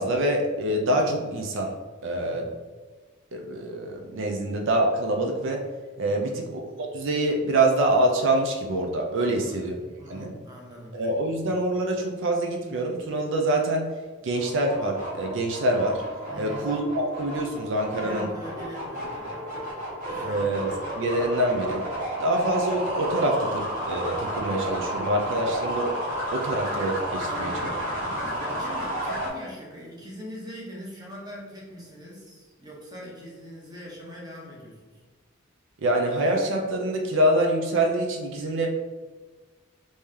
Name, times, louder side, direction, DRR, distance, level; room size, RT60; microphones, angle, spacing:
voice 1, 0.0-1.7 2.0-2.5 3.3-5.6 6.0-9.8 10.1-10.3 10.9-13.9 14.2-16.0 16.3-18.3 20.2-20.7 21.0-21.8 22.2-25.9 26.3-27.7 28.1-28.2 35.8-38.7, right 1 dB, 65° right, 2 dB, 0.4 m, -25 dB
voice 2, 2.1-2.6 6.1-6.4 9.2-11.0 16.3-16.7 17.9-19.4 20.1-20.5 27.2-27.8 28.2-35.0, equal, 20° right, -3 dB, 0.9 m, -42 dB
sound 1, 14.3-29.3, right 1 dB, 45° right, 1.2 m, -32 dB
3.1 x 2.8 x 3.6 m, 1.3 s
head